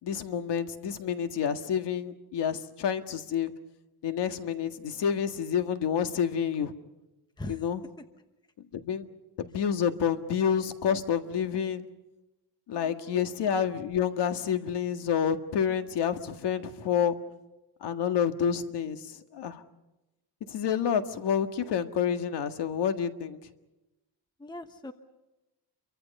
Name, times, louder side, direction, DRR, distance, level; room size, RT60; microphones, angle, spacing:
voice 1, 0.0-3.5 4.0-6.7 7.5-7.8 8.7-9.1 9.4-11.9 12.7-17.2 17.8-19.0 19.3-19.6 20.5-23.4, left 8 dB, 70° left, 7 dB, 1.9 m, -28 dB
voice 2, 12.7-13.2 24.4-24.9, left 1 dB, 10° left, 8 dB, 1.1 m, -40 dB
28.5 x 24.5 x 5.5 m, 1.0 s
cardioid pair, 140°, 42 cm